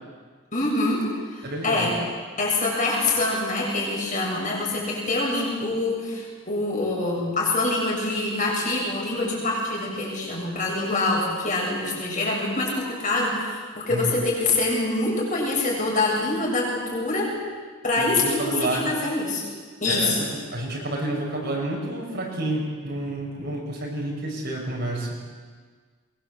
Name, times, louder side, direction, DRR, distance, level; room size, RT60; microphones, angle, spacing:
voice 1, 0.5-1.9 2.4-17.3 17.8-19.4 19.8-20.3, left 2 dB, 35° left, -2 dB, 7.6 m, -25 dB
voice 2, 1.4-1.9 13.9-14.1 18.0-19.0 19.8-25.2, right 1 dB, 50° right, -3 dB, 5.9 m, -29 dB
23.5 x 22.5 x 8.0 m, 1.5 s
head